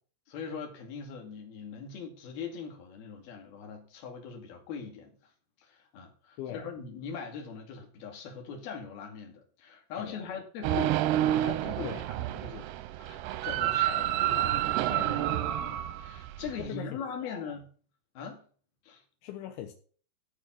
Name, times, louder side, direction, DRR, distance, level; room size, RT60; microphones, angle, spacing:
voice 1, 0.3-5.1 5.6-12.7 13.0-17.7 18.2-18.4 18.9-19.0, left 6 dB, 55° left, 4.0 m, -41 dB
voice 2, 10.0-10.3 11.8-12.0 16.6-16.9 17.2-17.5 19.2-19.7, left 11 dB, 80° left, 3.3 m, -40 dB
sound 1, 10.6-16.7, right 13 dB, 80° right, 2.5 m, -29 dB
14.5 x 4.9 x 7.4 m
omnidirectional pair, 5.4 m